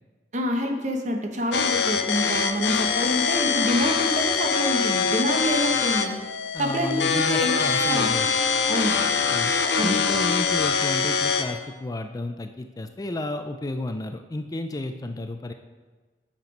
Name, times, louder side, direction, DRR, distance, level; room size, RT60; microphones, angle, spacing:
voice 1, 0.3-6.2 6.6-7.6 7.9-8.1 8.6-9.0 9.8-10.0, equal, 45° right, 3 dB, 1.0 m, -27 dB
sound 1, 1.5-11.5, left 5 dB, 80° left, 0.7 m, -23 dB
voice 2, 6.5-8.3 9.3-9.5 9.8-15.5, left 2 dB, 20° left, 7 dB, 0.4 m, -32 dB
8.5 x 6.0 x 5.2 m, 1.3 s
head